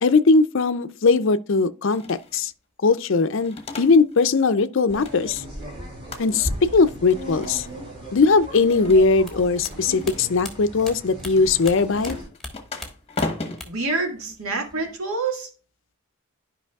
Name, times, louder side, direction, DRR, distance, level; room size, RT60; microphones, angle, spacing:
voice 1, 0.0-2.5 2.8-5.4 6.2-7.7 8.1-12.2, left 4 dB, 55° left, 0.5 m, -19 dB
sound 1, 1.9-2.5 3.2-4.3 4.6-5.7 6.1-6.6 7.0-7.8 8.5-9.4 9.9-10.5 11.3-15.0, left 3 dB, 25° left, 1.0 m, -36 dB
sound 2, 4.9-12.2, equal, 25° right, 3.3 m, -36 dB
sound 3, 9.2-12.1 12.4-13.9 14.2-14.9, left 2 dB, ahead, 1.4 m, -38 dB
voice 2, 13.7-15.5, right 3 dB, 70° right, 1.9 m, -27 dB
11.5 x 5.3 x 2.3 m
head